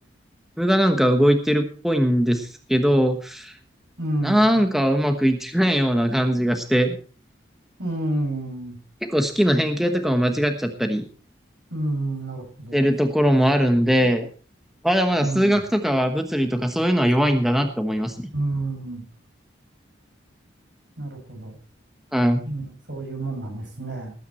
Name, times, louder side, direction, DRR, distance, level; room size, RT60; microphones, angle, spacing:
voice 1, 0.6-3.5 4.2-7.0 9.0-11.0 12.7-14.3 14.8-18.1 22.1-22.4, equal, ahead, 5 dB, 1.2 m, -20 dB
voice 2, 4.0-4.6 7.8-8.8 9.5-9.9 11.7-12.9 15.2-15.6 18.3-19.0 21.0-21.6 22.5-24.1, right 2 dB, 70° right, 3 dB, 6.4 m, -29 dB
19.0 x 9.4 x 4.4 m, 0.40 s
head